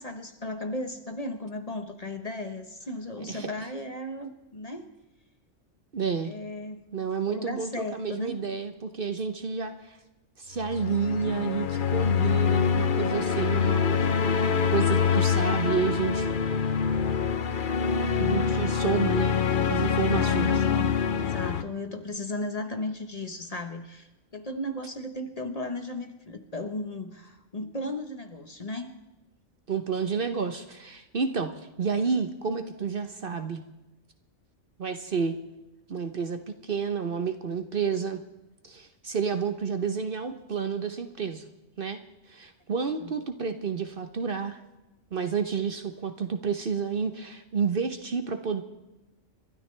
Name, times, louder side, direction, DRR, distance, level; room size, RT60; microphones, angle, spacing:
voice 1, 0.0-4.9 6.2-6.8 7.3-8.4 20.1-28.9 43.0-43.1, left 1 dB, 30° left, 6 dB, 1.2 m, -36 dB
voice 2, 5.9-6.3 6.9-10.0 10.4-16.3 18.2-19.4 19.6-20.7 29.7-33.6 34.8-35.4 35.9-38.2 38.6-41.5 41.8-42.0 42.3-44.6 45.1-48.6, right 6 dB, 50° right, 8 dB, 1.0 m, -30 dB
sound 1, 10.6-21.6, left 6 dB, 50° left, 0.8 m, -25 dB
30.0 x 13.0 x 3.3 m, 1.0 s
omnidirectional pair, 1.3 m